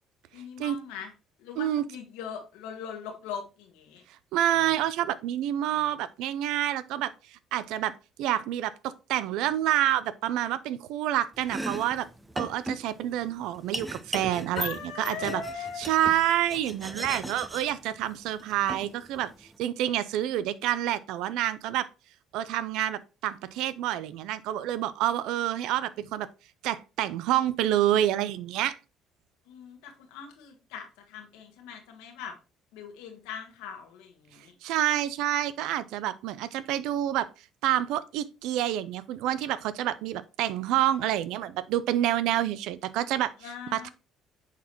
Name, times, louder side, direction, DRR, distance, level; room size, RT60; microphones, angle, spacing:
voice 1, 0.3-1.1 1.4-4.0 14.5-15.9 29.4-32.3 32.7-34.5 43.4-43.9, left 7 dB, 85° left, 1.6 m, -40 dB
voice 2, 4.3-7.9 8.2-12.1 12.4-14.7 15.1-15.4 15.8-19.3 19.6-21.9 22.3-26.3 26.6-28.8 34.6-37.3 37.6-43.3 43.7-43.9, right 12 dB, 75° right, 0.5 m, -28 dB
Domestic sounds home sounds, 11.3-19.6, right 1 dB, 10° right, 0.8 m, -39 dB
8.1 x 4.1 x 3.0 m
supercardioid pair, 70°, 0 cm